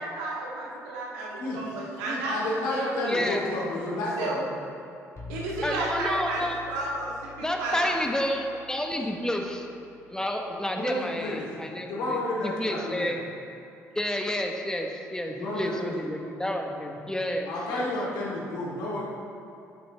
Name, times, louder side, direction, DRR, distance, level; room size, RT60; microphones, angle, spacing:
voice 1, 0.0-2.4 2.6-3.3 4.2-4.4 5.3-8.0, right 2 dB, 80° right, -4 dB, 1.9 m, -32 dB
voice 2, 2.0-4.4 10.7-11.4 11.9-13.1 15.3-16.9 17.5-19.0, left 1 dB, 70° left, -5 dB, 2.4 m, -31 dB
voice 3, 3.1-3.4 5.6-6.6 7.4-9.7 10.1-12.2 12.4-13.2 13.9-17.9, left 1 dB, 10° left, 2 dB, 1.4 m, -30 dB
sound 1, 5.2-10.9, left 5 dB, 45° left, 2.1 m, -47 dB
10.5 x 8.5 x 3.6 m, 2.7 s
hypercardioid pair, 45°, 7 cm